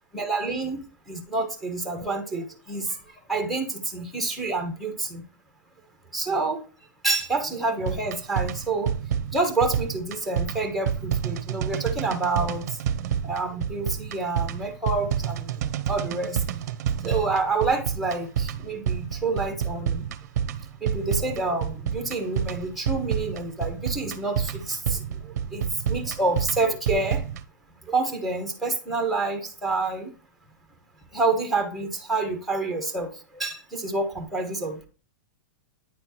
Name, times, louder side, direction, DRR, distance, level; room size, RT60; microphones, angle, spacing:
voice 1, 0.1-3.0 3.3-5.2 6.1-6.6 7.0-8.9 9.3-12.7 13.2-15.5 15.9-16.4 17.0-20.0 20.8-25.0 25.5-27.2 27.9-30.1 31.1-34.9, right 3 dB, ahead, 1.2 m, -28 dB
sound 1, 7.8-27.4, right 8 dB, 55° right, 0.6 m, -29 dB
9.4 x 4.3 x 2.9 m
supercardioid pair, 165°, 10 cm